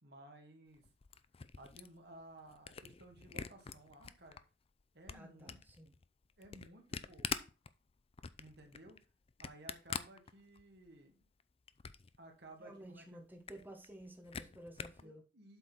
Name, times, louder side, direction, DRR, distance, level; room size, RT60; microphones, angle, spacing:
voice 1, 0.0-0.9 1.6-4.4 4.9-5.6 6.4-7.3 8.4-9.0 9.4-11.3 12.2-13.2 14.6-14.7 15.0-15.6, right 1 dB, 65° right, 2.0 m, -57 dB
Camera, 0.7-4.4 4.8-10.9 11.2-12.2 12.5-12.6 12.8-12.9 13.2-15.0, left 6 dB, 35° left, 0.5 m, -45 dB
voice 2, 5.1-5.9 12.6-15.2, right 1 dB, 10° right, 1.3 m, -53 dB
8.0 x 4.0 x 6.1 m
head